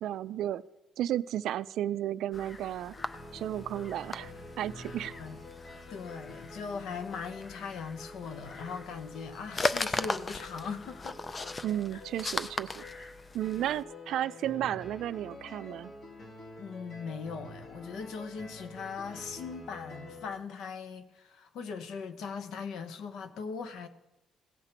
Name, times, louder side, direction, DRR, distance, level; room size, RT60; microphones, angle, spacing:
voice 1, 0.0-0.6 1.0-2.9 3.3-4.3 4.6-5.1 11.6-12.8 13.3-15.9, right 12 dB, 65° right, 0.3 m, -33 dB
sound 1, 2.3-13.8, left 3 dB, 20° left, 0.4 m, -38 dB
sound 2, 3.0-20.3, left 1 dB, 40° left, 1.4 m, -48 dB
voice 2, 5.9-11.2 11.9-12.0 16.6-23.9, left 5 dB, 65° left, 0.9 m, -40 dB
17.0 x 5.9 x 4.5 m
cardioid pair, 145°, 0 cm